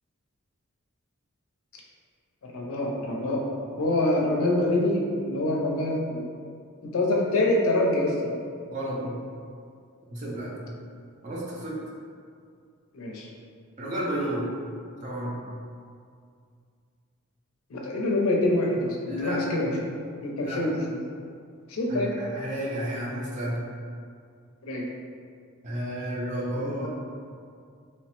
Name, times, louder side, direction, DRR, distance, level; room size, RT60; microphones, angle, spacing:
voice 1, 2.4-3.4 3.8-6.3 6.9-8.4 12.9-13.3 17.7-19.7 20.2-21.0 21.7-22.1 24.6-24.8 26.6-26.9, left 1 dB, 75° left, -1 dB, 0.5 m, -25 dB
voice 2, 8.7-9.2 10.1-10.6 11.2-11.8 13.8-14.5 15.0-15.3 19.1-19.4 20.4-20.6 21.9-22.1 22.3-23.7 25.6-26.9, equal, 35° right, -5 dB, 0.4 m, -31 dB
3.0 x 2.0 x 2.9 m, 2.2 s
head